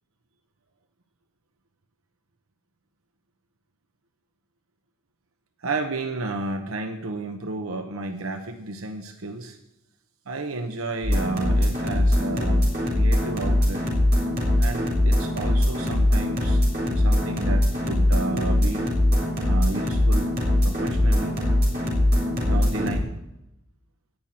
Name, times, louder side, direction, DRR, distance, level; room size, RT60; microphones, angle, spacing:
voice 1, 5.6-9.6 10.3-13.8 14.6-16.6 16.9-18.9 19.4-20.3 20.6-21.4 22.4-23.1, right 2 dB, 90° right, 6 dB, 1.1 m, -32 dB
sound 1, 11.0-23.0, left 1 dB, 45° right, 3.6 m, -21 dB
17.5 x 5.9 x 8.9 m, 0.88 s
head